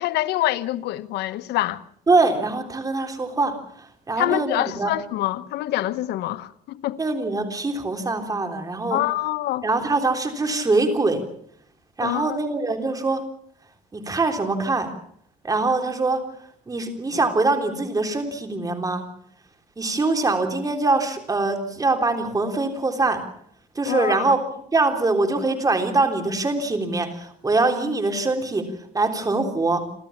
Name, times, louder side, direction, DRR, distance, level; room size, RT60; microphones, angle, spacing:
voice 1, 0.0-1.8 4.2-7.0 8.9-9.6 12.0-12.4 23.8-24.2, left 15 dB, 80° left, 1.1 m, -25 dB
voice 2, 2.1-4.9 7.0-9.0 9.6-11.2 12.0-13.2 13.9-14.9 15.4-16.2 16.7-19.0 19.8-23.2 23.8-24.4 24.7-29.9, right 3 dB, 20° right, 3.5 m, -23 dB
29.0 x 13.5 x 7.2 m
cardioid pair, 110°, 17 cm